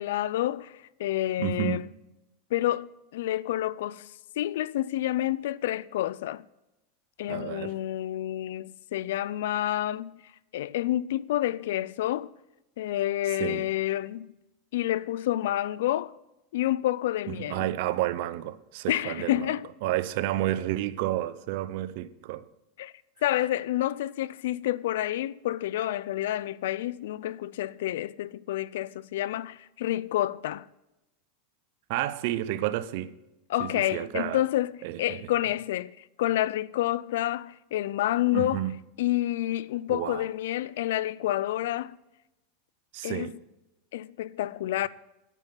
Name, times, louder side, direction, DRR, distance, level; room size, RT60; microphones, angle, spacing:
voice 1, 0.0-1.9 2.5-6.5 7.2-10.2 10.5-12.3 12.8-14.3 14.7-16.1 16.5-17.7 18.9-19.7 22.8-22.9 23.2-30.7 33.5-38.6 39.0-42.0 43.0-43.3 43.9-44.9, left 14 dB, 80° left, 0.4 m, -29 dB
voice 2, 1.4-1.9 7.3-7.7 13.3-13.6 17.4-19.5 19.8-22.4 31.9-33.1 33.6-34.4 34.8-35.5 38.3-38.7 39.9-40.3 42.9-43.3, right 14 dB, 65° right, 0.7 m, -31 dB
10.5 x 9.2 x 5.8 m
supercardioid pair, 120°, 0 cm